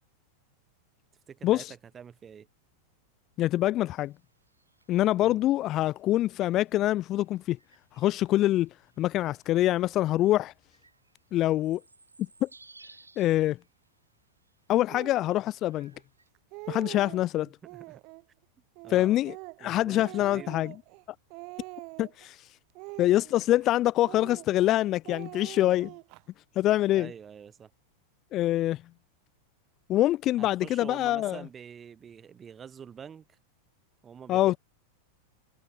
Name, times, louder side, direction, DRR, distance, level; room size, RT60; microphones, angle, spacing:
voice 1, 1.3-2.5 5.2-5.4 17.7-18.0 18.8-19.2 19.6-20.5 26.9-27.7 30.4-33.3 34.0-34.4, right 7 dB, 20° right, 2.3 m, -46 dB
voice 2, 3.4-4.1 4.9-7.6 8.0-8.7 9.0-10.5 11.3-11.8 12.4-12.5 13.2-13.6 14.7-15.9 16.7-17.5 18.9-19.3 19.6-20.7 22.0-22.4 23.0-25.9 26.6-27.1 28.3-28.8 29.9-31.4 34.3-34.6, left 14 dB, 35° left, 0.4 m, -25 dB
sound 1, 4.0-16.3, right 3 dB, 80° right, 5.7 m, -61 dB
Speech, 14.9-15.2 15.9-16.0 16.3-17.2 17.6-18.2 18.8-21.0 21.3-22.3 22.7-23.7 24.0-24.7 25.0-26.2, right 29 dB, 45° right, 2.3 m, -44 dB
figure-of-eight pair, 90°, 0 cm